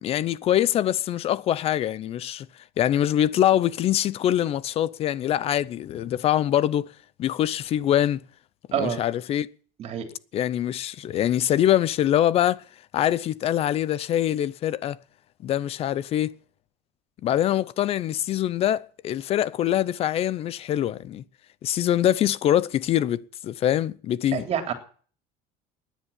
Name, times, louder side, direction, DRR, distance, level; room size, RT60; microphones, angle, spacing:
voice 1, 0.0-2.5 2.8-6.9 7.2-8.2 8.7-9.5 10.3-12.6 12.9-15.0 15.4-16.4 17.2-21.2 21.6-24.4, left 11 dB, 35° left, 0.6 m, -24 dB
voice 2, 24.3-24.7, right 9 dB, 35° right, 3.4 m, -27 dB
18.0 x 10.5 x 7.3 m
cardioid pair, 170°, 17 cm